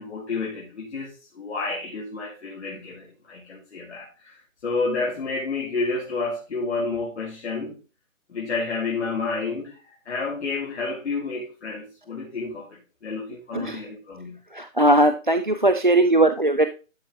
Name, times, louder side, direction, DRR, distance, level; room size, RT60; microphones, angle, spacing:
voice 1, 0.0-7.8 8.3-12.7 13.0-14.4, left 3 dB, 55° left, 2.8 m, -30 dB
voice 2, 14.5-16.7, right 1 dB, 40° right, 0.4 m, -19 dB
12.0 x 4.9 x 3.8 m
hypercardioid pair, 165°, 41 cm